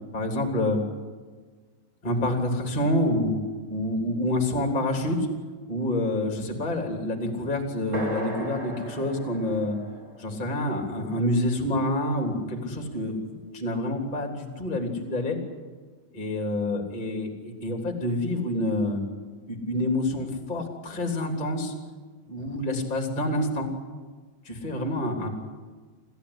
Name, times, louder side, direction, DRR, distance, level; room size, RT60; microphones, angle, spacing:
voice 1, 0.1-0.8 2.0-3.4 3.7-5.3 5.7-9.8 10.2-15.4 16.1-19.0 19.5-21.7 22.3-23.7 24.4-25.3, left 1 dB, 10° left, 3 dB, 2.8 m, -27 dB
sound 1, 7.9-11.8, equal, 20° right, 5.3 m, -37 dB
27.5 x 15.0 x 9.9 m, 1.4 s
omnidirectional pair, 4.9 m